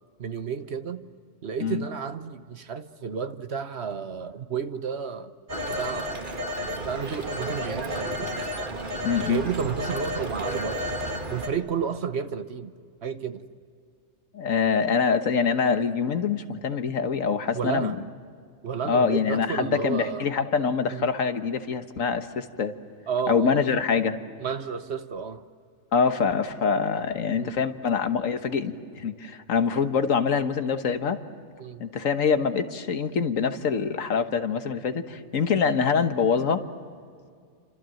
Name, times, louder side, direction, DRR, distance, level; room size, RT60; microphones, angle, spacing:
voice 1, 0.2-1.0 1.4-5.3 5.7-6.3 6.8-8.3 9.2-10.9 11.3-12.7 13.0-13.4 17.5-18.0 18.6-20.3 20.9-21.1 23.1-23.6 24.4-25.4 27.4-27.5 31.6-31.8, right 6 dB, 55° right, 10 dB, 1.2 m, -31 dB
Telephone, 5.5-11.5, equal, 40° right, 1.9 m, -32 dB
voice 2, 9.0-9.4 14.3-18.0 18.8-22.7 23.3-24.2 25.9-31.2 31.8-36.6, left 6 dB, 75° left, 8 dB, 1.7 m, -25 dB
29.0 x 26.0 x 7.8 m, 2.1 s
omnidirectional pair, 1.4 m